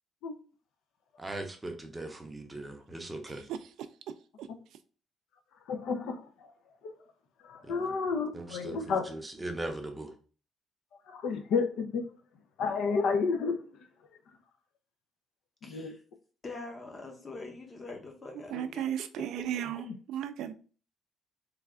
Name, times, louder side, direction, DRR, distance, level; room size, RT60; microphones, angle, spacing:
voice 1, 1.2-3.5 7.6-8.0 8.3-10.1, right 2 dB, 15° right, 0.6 m, -39 dB
voice 2, 5.7-6.2 6.8-6.9 7.4-9.1 11.1-12.1 12.6-13.6 15.6-16.0 19.9-20.0, left 5 dB, 75° left, 0.5 m, -31 dB
voice 3, 15.6-16.0 16.4-18.8, left 3 dB, 25° left, 0.7 m, -44 dB
voice 4, 18.3-20.5, right 10 dB, 80° right, 0.3 m, -35 dB
3.2 x 2.3 x 3.5 m
cardioid pair, 150°, 0 cm